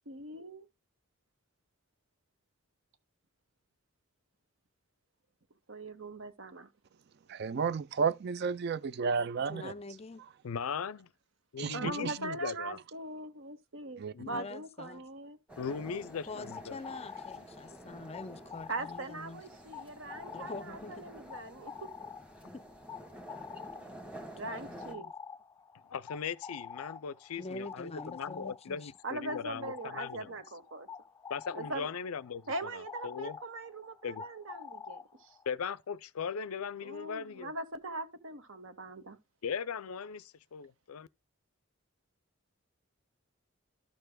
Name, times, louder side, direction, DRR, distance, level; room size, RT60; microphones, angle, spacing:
voice 1, 0.1-0.7 5.7-6.7 11.7-15.4 18.7-21.7 24.4-25.1 29.0-30.9 31.5-31.9 32.5-35.3 36.8-39.2, right 2 dB, 65° right, 1.1 m, -41 dB
voice 2, 7.3-9.7 11.6-12.2 14.0-14.1, right 5 dB, 50° right, 0.4 m, -32 dB
voice 3, 9.5-10.2 14.2-15.0 16.3-19.4 20.3-21.1 22.4-22.6 24.4-25.1 27.4-28.9, left 3 dB, 30° left, 0.5 m, -45 dB
voice 4, 10.4-11.1 11.5-12.8 14.1-14.4 15.6-16.8 25.9-30.3 31.3-33.4 34.0-34.2 35.5-37.5 39.4-41.1, left 6 dB, 85° left, 0.5 m, -39 dB
sound 1, 15.5-24.9, right 1 dB, 5° right, 1.3 m, -50 dB
sound 2, 16.1-35.5, left 6 dB, 10° left, 0.8 m, -48 dB
13.0 x 6.7 x 2.2 m
head